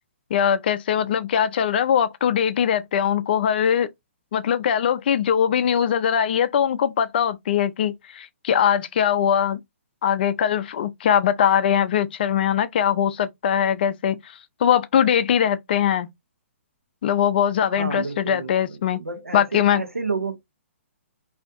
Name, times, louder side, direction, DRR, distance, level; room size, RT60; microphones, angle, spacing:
voice 1, 0.3-3.9 4.3-9.6 10.0-16.1 17.0-19.0 19.3-19.8, left 9 dB, 45° left, 0.4 m, -21 dB
voice 2, 17.7-20.4, right 4 dB, 90° right, 0.6 m, -30 dB
2.5 x 2.4 x 2.3 m
figure-of-eight pair, 130°, 7 cm